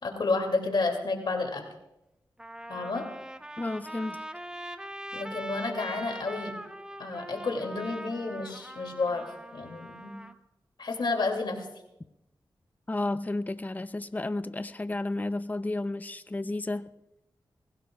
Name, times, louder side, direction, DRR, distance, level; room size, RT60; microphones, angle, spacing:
voice 1, 0.0-1.6 2.7-3.1 5.1-6.5 7.0-10.2 10.8-11.7, left 3 dB, 70° left, 2.5 m, -30 dB
Trumpet, 1.7-1.8 2.4-10.3, right 1 dB, 10° right, 0.9 m, -42 dB
voice 2, 3.6-4.2 12.9-16.9, left 2 dB, 20° left, 0.5 m, -32 dB
21.5 x 16.0 x 2.4 m
cardioid pair, 60°, 8 cm